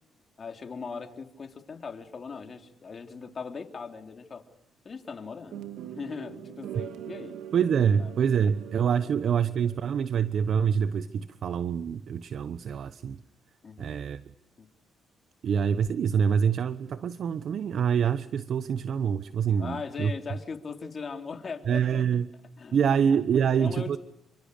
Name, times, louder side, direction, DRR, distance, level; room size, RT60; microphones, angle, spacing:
voice 1, 0.4-4.5 4.9-7.4 8.0-8.1 9.0-9.1 13.6-14.0 14.6-14.7 19.6-22.1 22.6-23.0 23.3-24.0, left 5 dB, 40° left, 5 dB, 3.6 m, -39 dB
sound 1, 5.5-10.6, right 10 dB, 80° right, 2.5 m, -43 dB
voice 2, 7.5-13.2 13.8-14.2 15.4-20.1 21.7-22.3 22.7-24.0, right 7 dB, 60° right, 13 dB, 1.1 m, -26 dB
29.0 x 26.0 x 6.7 m, 0.80 s
cardioid pair, 90°, 0 cm